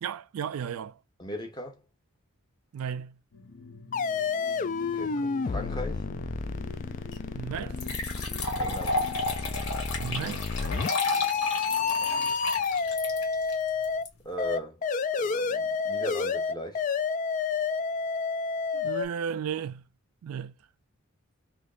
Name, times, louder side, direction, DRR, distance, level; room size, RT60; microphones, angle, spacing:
voice 1, 0.0-1.0 2.7-3.2 7.3-8.0 10.0-10.8 18.7-19.8 20.2-20.6, right 7 dB, 80° right, 0.3 m, -35 dB
voice 2, 1.2-1.8 4.8-6.0 8.6-9.0 14.2-14.8 15.2-16.8, equal, 20° left, 0.9 m, -38 dB
sound 1, 3.3-12.3, left 3 dB, 60° left, 0.8 m, -46 dB
sound 2, 3.9-14.0 14.4-19.0, left 5 dB, 35° left, 0.3 m, -30 dB
sound 3, 7.1-7.2 7.8-14.1, left 2 dB, 85° left, 1.5 m, -32 dB
3.4 x 3.1 x 2.4 m
head